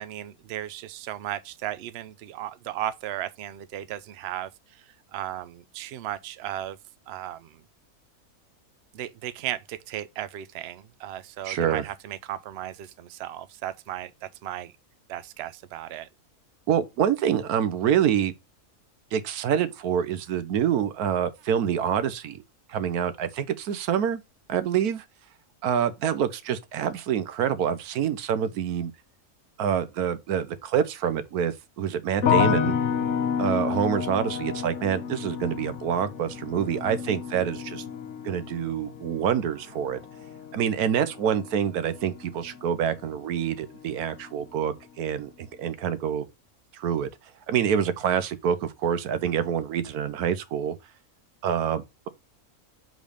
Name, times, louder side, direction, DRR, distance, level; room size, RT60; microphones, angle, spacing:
voice 1, 0.0-6.8 7.1-7.6 8.9-14.7 15.1-16.1, right 12 dB, 65° right, 0.6 m, -35 dB
voice 2, 11.4-11.8 16.7-18.3 19.1-22.4 22.7-24.2 24.5-25.0 25.6-28.9 29.6-32.7 33.4-37.8 38.2-40.0 40.5-46.2 46.7-47.1 47.5-50.7 51.4-51.8, right 8 dB, 85° right, 1.2 m, -26 dB
sound 1, 32.2-43.3 43.6-44.3, left 8 dB, 60° left, 1.1 m, -30 dB
5.1 x 4.0 x 5.0 m
omnidirectional pair, 1.6 m